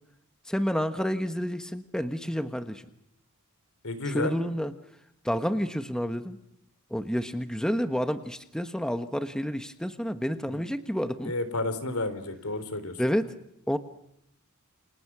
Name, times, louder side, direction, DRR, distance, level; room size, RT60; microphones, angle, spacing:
voice 1, 0.5-2.8 4.1-4.7 5.2-6.4 6.9-11.3 13.0-13.3 13.7-13.8, equal, 5° left, 8 dB, 1.3 m, -29 dB
voice 2, 3.8-4.3 10.5-10.6 11.2-13.0, left 2 dB, 70° left, 12 dB, 3.8 m, -31 dB
29.5 x 27.5 x 6.2 m, 0.78 s
head